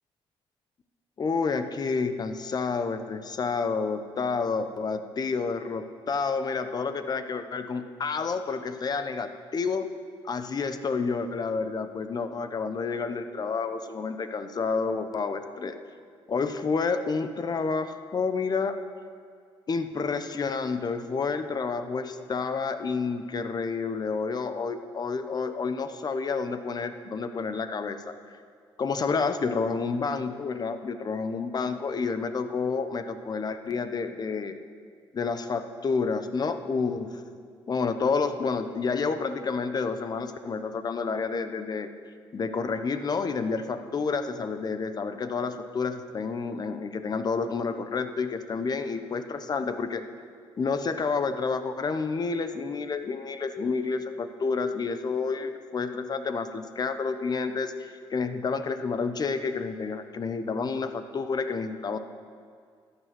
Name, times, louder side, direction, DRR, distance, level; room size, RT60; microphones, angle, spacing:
voice 1, 1.2-9.9 10.2-15.8 16.3-18.8 19.7-28.1 28.8-34.6 35.1-37.2 37.7-41.9 42.3-50.0 50.6-62.0, left 4 dB, 40° left, 9 dB, 0.9 m, -29 dB
14.0 x 9.8 x 6.0 m, 2.1 s
cardioid pair, 90°, 10 cm